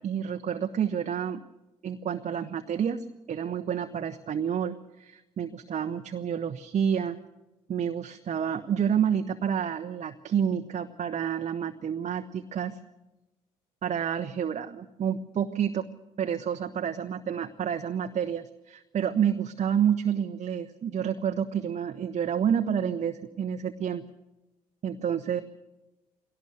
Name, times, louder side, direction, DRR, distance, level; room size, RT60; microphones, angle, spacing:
voice 1, 0.0-1.4 1.8-7.2 7.7-12.8 13.8-15.8 16.2-24.0 24.8-25.4, right 8 dB, 40° right, 7 dB, 0.9 m, -29 dB
21.0 x 18.0 x 6.9 m, 1.1 s
figure-of-eight pair, 45°, 19 cm